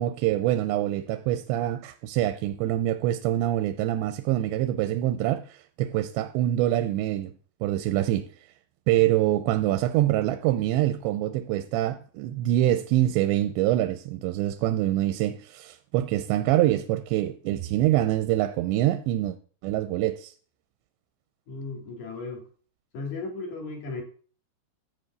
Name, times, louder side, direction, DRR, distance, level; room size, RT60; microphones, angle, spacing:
voice 1, 0.0-7.3 7.6-8.3 8.9-19.4 19.6-20.3, right 13 dB, 90° right, 2.9 m, -25 dB
voice 2, 21.5-22.4 22.9-24.0, left 3 dB, 45° left, 3.6 m, -35 dB
12.0 x 5.2 x 8.0 m
omnidirectional pair, 5.1 m